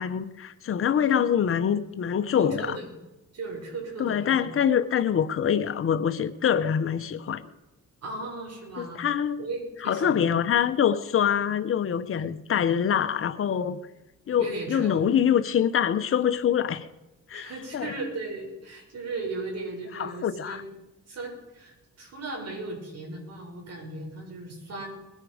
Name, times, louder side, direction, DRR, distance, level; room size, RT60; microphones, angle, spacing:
voice 1, 0.0-2.8 4.0-7.4 8.8-9.4 9.8-13.8 14.3-16.9 17.3-17.9 19.9-20.6, left 8 dB, 45° left, 1.0 m, -25 dB
voice 2, 2.4-2.9 3.3-4.5 8.0-10.4 14.4-15.1 17.3-20.7 21.1-24.9, right 3 dB, 55° right, 6.7 m, -37 dB
21.0 x 9.9 x 5.1 m
cardioid pair, 90°, 30 cm